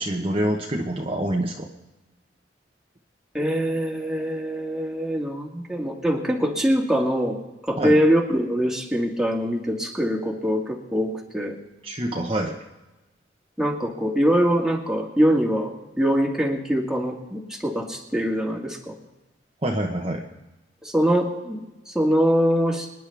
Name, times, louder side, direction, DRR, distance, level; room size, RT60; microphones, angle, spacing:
voice 1, 0.0-1.7 7.8-8.0 11.8-12.5 19.6-20.2, right 1 dB, 30° right, 0 dB, 1.1 m, -26 dB
voice 2, 3.3-7.4 7.7-11.6 13.6-18.9 20.8-21.6 21.9-22.9, equal, 5° right, -1 dB, 1.9 m, -23 dB
26.0 x 10.5 x 3.5 m, 1.0 s
head